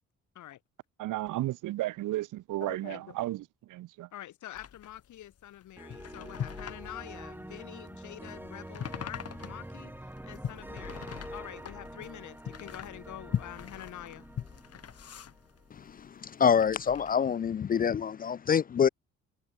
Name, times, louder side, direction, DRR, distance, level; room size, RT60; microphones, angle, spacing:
voice 1, 1.0-3.4 3.7-4.1, right 16 dB, 85° right, 1.4 m, -33 dB
voice 2, 2.7-3.1 4.1-14.3, left 13 dB, 75° left, 2.7 m, -46 dB
sound 1, 4.5-16.1 16.5-17.2, left 8 dB, 55° left, 2.7 m, -41 dB
sound 2, 5.8-15.8, right 1 dB, 5° right, 5.9 m, -46 dB
voice 3, 16.2-18.9, left 7 dB, 30° left, 0.4 m, -25 dB
cardioid pair, 90°, 30 cm